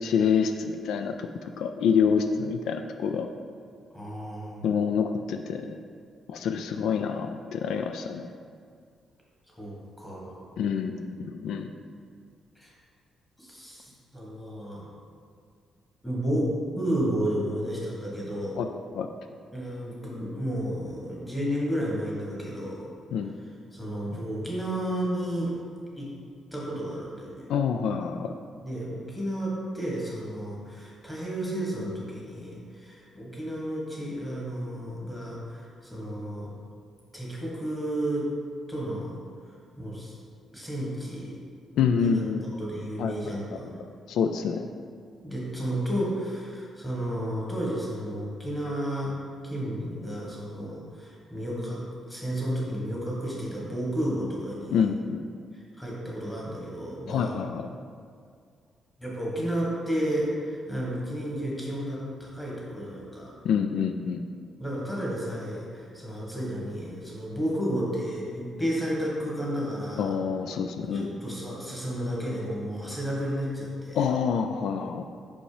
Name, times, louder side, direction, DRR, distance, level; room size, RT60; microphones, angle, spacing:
voice 1, 0.0-3.3 4.6-5.8 6.3-8.3 10.6-11.7 18.6-18.7 18.9-19.1 23.1-23.3 27.5-28.3 41.8-42.4 43.0-43.1 44.1-44.7 54.7-55.3 57.1-57.7 63.4-64.2 70.0-71.1 73.9-75.0, left 6 dB, 70° left, 6 dB, 0.3 m, -27 dB
voice 2, 3.9-4.6 9.5-10.5 12.6-12.7 13.4-14.9 16.0-16.5 16.7-18.6 19.5-22.9 23.7-25.5 26.0-26.1 26.5-27.5 28.6-36.5 37.1-38.3 38.7-39.2 39.8-40.1 40.5-41.4 41.9-42.2 42.6-43.8 45.2-49.1 49.4-54.8 55.8-57.3 59.0-63.3 64.6-70.1 70.8-74.1, equal, 5° left, -4 dB, 1.3 m, -32 dB
5.5 x 5.2 x 4.9 m, 2.1 s
cardioid pair, 180°, 0 cm